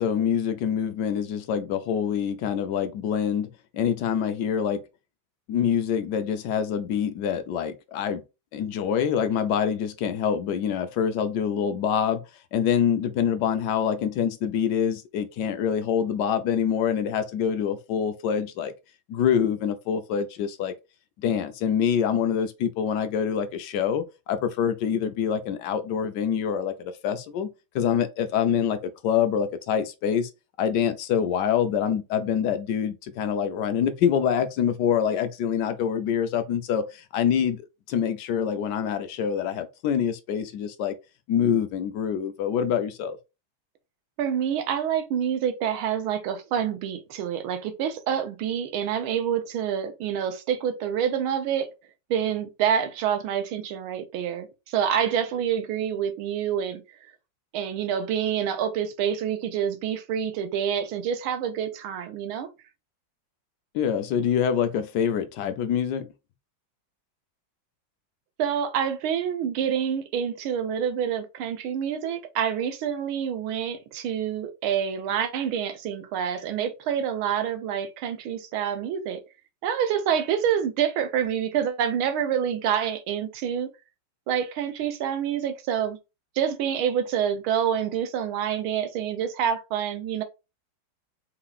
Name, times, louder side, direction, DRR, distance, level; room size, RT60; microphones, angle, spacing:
voice 1, 0.0-3.5 3.7-4.8 5.5-8.2 8.5-12.2 12.5-18.7 19.1-20.7 21.2-27.5 27.7-28.8 29.0-30.3 30.6-36.8 37.1-37.6 37.9-40.9 41.3-43.2 63.7-66.1, left 8 dB, 70° left, 1.1 m, -25 dB
voice 2, 44.2-51.7 52.1-56.8 57.5-62.5 68.4-79.2 79.6-83.7 84.3-86.0 86.4-90.2, right 8 dB, 90° right, 1.6 m, -27 dB
4.6 x 3.8 x 2.4 m
omnidirectional pair, 2.2 m